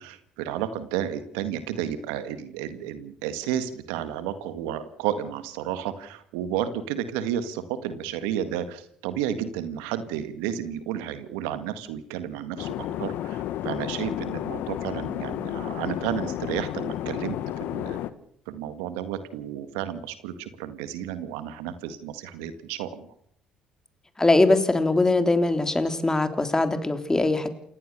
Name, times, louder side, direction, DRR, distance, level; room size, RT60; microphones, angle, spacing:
voice 1, 0.0-18.0 18.5-23.1, right 10 dB, 80° right, 11 dB, 1.9 m, -32 dB
sound 1, 12.6-18.1, left 12 dB, 70° left, 1.3 m, -32 dB
voice 2, 24.2-27.5, left 2 dB, 15° left, 9 dB, 3.4 m, -21 dB
29.0 x 16.5 x 6.9 m, 0.66 s
hypercardioid pair, 60°, 3 cm